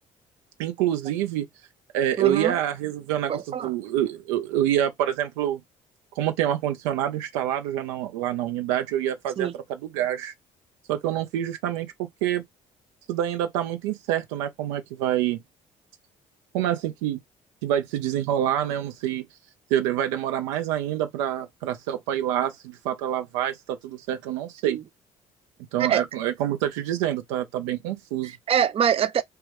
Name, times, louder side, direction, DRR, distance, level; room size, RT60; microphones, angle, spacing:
voice 1, 0.6-1.5 1.9-5.6 6.2-10.3 10.9-12.4 13.1-15.4 16.5-17.2 17.6-19.3 19.7-24.8 25.7-28.3, right 11 dB, 90° right, 0.6 m, -27 dB
voice 2, 2.2-2.5 3.3-3.7 9.4-9.5 24.6-24.8 25.8-26.0 28.2-29.2, right 9 dB, 35° right, 0.4 m, -24 dB
3.4 x 2.3 x 3.0 m
supercardioid pair, 65°, 16 cm